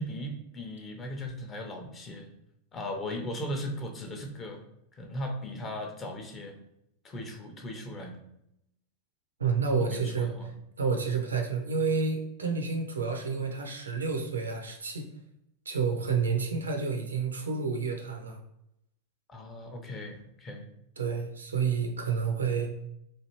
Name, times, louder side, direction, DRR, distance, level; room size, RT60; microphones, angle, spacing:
voice 1, 0.0-2.3 2.7-4.6 4.9-6.6 7.0-8.2 9.7-10.5 19.3-20.7, left 1 dB, 25° left, 3 dB, 0.6 m, -38 dB
voice 2, 9.4-10.3 10.8-15.1 15.7-18.4 21.0-22.7, right 5 dB, 75° right, 3 dB, 0.5 m, -29 dB
3.1 x 2.4 x 3.0 m, 0.81 s
figure-of-eight pair, 90°, 0 cm